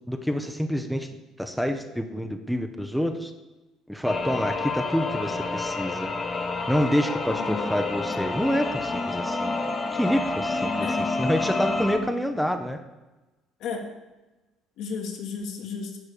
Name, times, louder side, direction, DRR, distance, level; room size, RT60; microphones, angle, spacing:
voice 1, 0.1-1.1 1.4-3.3 3.9-6.1 6.7-9.6 9.9-12.8, equal, ahead, 5 dB, 1.0 m, -27 dB
sound 1, 4.0-12.0, left 3 dB, 35° left, 1.2 m, -29 dB
voice 2, 7.3-7.7 10.8-11.0 13.6-13.9 14.8-16.0, left 5 dB, 65° left, 2 dB, 1.7 m, -33 dB
10.5 x 4.8 x 6.7 m, 1.1 s
hypercardioid pair, 60°, 0 cm